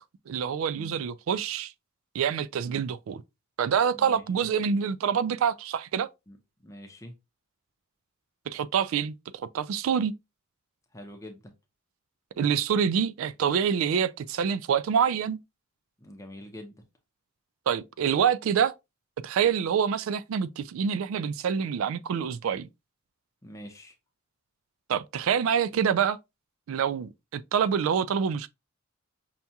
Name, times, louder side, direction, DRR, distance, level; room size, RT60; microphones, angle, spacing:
voice 1, 0.3-1.7 2.1-3.2 3.6-6.1 8.5-10.1 12.4-15.4 17.7-18.7 19.2-22.7 24.9-26.2 26.7-28.5, right 7 dB, 70° right, 0.3 m, -26 dB
voice 2, 3.9-4.5 6.3-7.2 10.9-11.5 16.0-16.8 23.4-24.0, equal, 15° left, 0.7 m, -45 dB
5.7 x 2.3 x 2.7 m
head